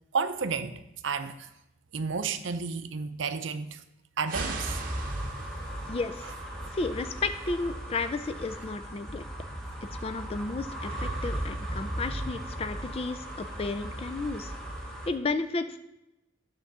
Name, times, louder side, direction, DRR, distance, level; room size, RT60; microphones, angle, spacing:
voice 1, 0.1-1.4 1.9-3.8 4.2-4.8, right 5 dB, 75° right, 0.6 m, -31 dB
sound 1, 4.3-15.1, right 1 dB, 5° left, 1.2 m, -37 dB
sound 2, 4.3-5.9, right 4 dB, 45° right, 0.8 m, -39 dB
voice 2, 5.9-6.3 6.7-9.2 9.9-14.5 15.1-15.8, left 3 dB, 30° left, 0.4 m, -33 dB
11.0 x 3.7 x 6.7 m
head